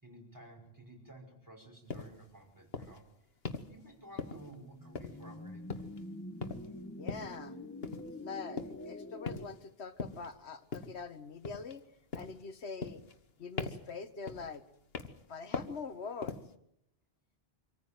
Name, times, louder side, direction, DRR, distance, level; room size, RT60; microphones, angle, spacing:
voice 1, 0.0-3.1 3.7-5.9, right 1 dB, 15° right, 1 dB, 5.5 m, -53 dB
sound 1, 1.9-2.1 2.7-3.0 3.4-3.7 4.2-4.6 5.0-5.4 5.7-6.0 6.4-6.7 7.1-7.4 7.8-8.1 8.6-8.9 9.3-9.6 10.0-10.3 10.7-11.0 11.4-11.8 12.1-12.4 12.8-13.3 13.6-13.9 14.3-14.6 14.9-15.3 15.5-15.8 16.2-16.5, left 4 dB, 65° left, 1.6 m, -40 dB
sound 2, 3.9-9.5, left 1 dB, 10° left, 1.3 m, -46 dB
voice 2, 7.0-7.6 8.0-11.9 12.1-13.0 13.4-14.6 15.3-16.4, left 5 dB, 85° left, 12 dB, 1.6 m, -44 dB
25.0 x 14.5 x 9.2 m, 0.76 s
omnidirectional pair, 1.1 m